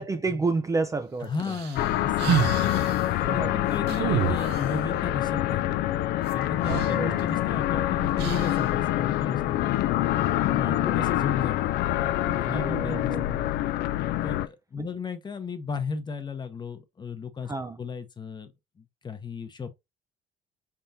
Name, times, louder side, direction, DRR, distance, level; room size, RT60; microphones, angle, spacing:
voice 1, 0.0-1.3 3.2-3.6 6.7-7.3 10.2-10.6 12.3-13.4 14.8-14.9 17.5-17.8, right 3 dB, 20° right, 0.4 m, -31 dB
voice 2, 1.2-2.7 3.2-5.9 6.3-9.6 10.4-11.7 12.3-13.1 14.2-17.5 17.8-19.7, left 5 dB, 25° left, 0.7 m, -35 dB
sound 1, 1.4-3.0 3.9-4.8 6.3-6.4 6.6-7.6 8.2-8.7, right 9 dB, 80° right, 0.7 m, -29 dB
sound 2, 1.8-14.5, left 14 dB, 75° left, 0.4 m, -26 dB
4.4 x 3.5 x 2.6 m
cardioid pair, 110°, 17 cm